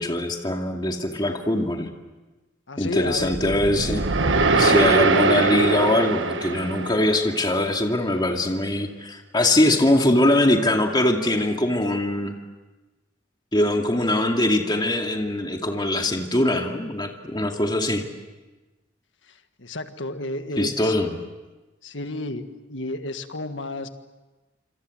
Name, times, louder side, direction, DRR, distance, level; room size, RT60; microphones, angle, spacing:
voice 1, 0.0-1.9 2.8-4.0 4.5-12.3 13.5-18.0 20.6-21.2, left 1 dB, 25° left, 2 dB, 2.4 m, -22 dB
voice 2, 2.7-3.5 19.6-20.9 21.8-23.9, left 2 dB, 80° left, 8 dB, 1.7 m, -31 dB
sound 1, 3.2-7.5, right 3 dB, 80° right, 1.5 m, -22 dB
27.0 x 26.5 x 7.9 m, 1.2 s
head